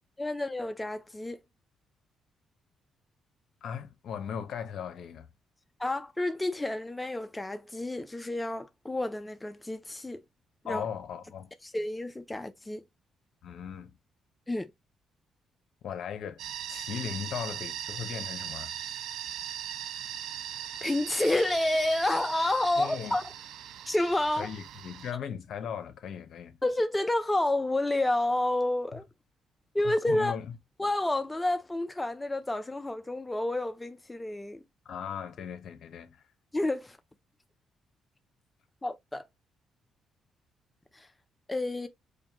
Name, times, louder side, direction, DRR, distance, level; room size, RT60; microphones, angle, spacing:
voice 1, 0.2-1.4 5.8-10.2 10.6-10.8 11.6-12.8 14.5-14.7 20.8-23.2 23.9-24.5 26.6-29.1 29.7-30.4 30.8-34.6 36.5-37.0 38.8-39.3 40.9-41.1 41.5-41.9, left 1 dB, 15° left, 0.4 m, -29 dB
voice 2, 3.6-5.3 10.6-11.5 13.4-13.9 15.8-16.4 16.7-18.7 22.8-23.2 24.4-26.6 29.8-30.5 34.8-36.2, left 8 dB, 70° left, 0.8 m, -38 dB
sound 1, 16.4-25.1, right 10 dB, 80° right, 0.4 m, -39 dB
5.1 x 2.2 x 2.8 m
cardioid pair, 90°, 0 cm